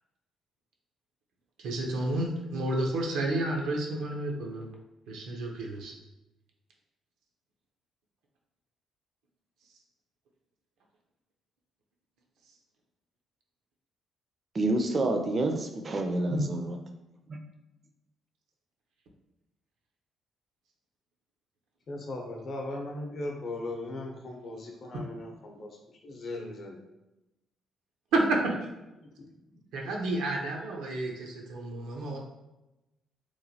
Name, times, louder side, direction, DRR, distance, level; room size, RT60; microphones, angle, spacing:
voice 1, 1.6-4.7 5.1-5.9 16.3-16.4 28.1-28.4 29.7-32.2, right 2 dB, 85° right, 0 dB, 0.5 m, -30 dB
voice 2, 14.5-16.8 17.3-17.4, right 2 dB, 35° right, 5 dB, 0.4 m, -28 dB
voice 3, 21.9-26.8 29.0-29.6, left 2 dB, 55° left, 1 dB, 0.6 m, -38 dB
3.0 x 2.2 x 2.7 m, 1.0 s
cardioid pair, 90°, 0 cm